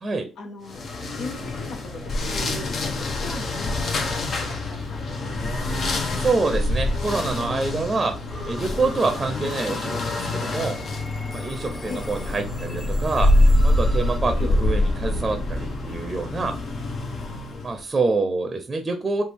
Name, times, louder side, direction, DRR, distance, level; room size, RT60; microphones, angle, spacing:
voice 1, 0.4-5.6 9.3-9.5 11.9-12.1 14.4-14.6, left 3 dB, 75° left, 2 dB, 1.0 m, -39 dB
sound 1, 0.7-17.8, left 1 dB, 55° left, 0.8 m, -25 dB
voice 2, 6.1-8.2 8.4-10.8 11.3-13.3 13.6-16.6 17.6-19.2, right 3 dB, 25° right, 6 dB, 0.6 m, -26 dB
sound 2, 8.3-9.2 9.4-14.2, equal, 15° left, 0.6 m, -42 dB
3.4 x 2.4 x 4.5 m, 0.32 s
cardioid pair, 90°, 0 cm